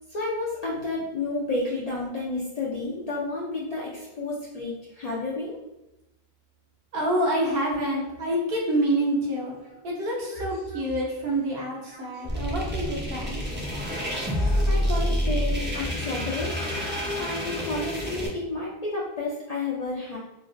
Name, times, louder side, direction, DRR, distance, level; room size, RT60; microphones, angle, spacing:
voice 1, 0.1-5.6 8.2-8.6 9.6-9.8 10.3-11.2 11.9-13.1 13.4-13.6 14.3-16.5 16.9-20.2, left 2 dB, 55° left, -5 dB, 0.4 m, -32 dB
voice 2, 6.9-9.5 9.8-13.4, right 1 dB, 65° right, -3 dB, 1.0 m, -27 dB
sound 1, 12.3-18.3, equal, 15° right, 0.3 m, -28 dB
3.2 x 2.3 x 2.5 m, 0.94 s
omnidirectional pair, 1.1 m